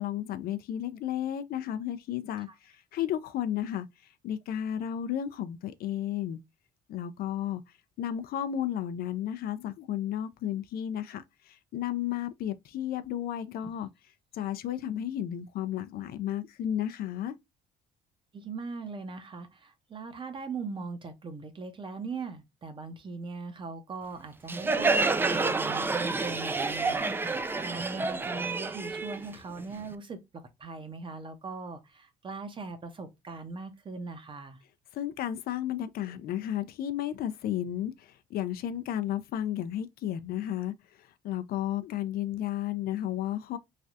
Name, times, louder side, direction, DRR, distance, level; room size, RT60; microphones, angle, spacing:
voice 1, 0.0-6.4 6.9-7.6 8.0-13.9 14.3-17.4 34.9-43.6, left 11 dB, 65° left, 0.4 m, -33 dB
voice 2, 18.3-30.2 30.6-34.6, right 4 dB, 30° right, 0.7 m, -40 dB
Crowd, 24.5-29.9, right 3 dB, 15° right, 0.3 m, -29 dB
3.2 x 2.3 x 2.6 m
cardioid pair, 110°, 17 cm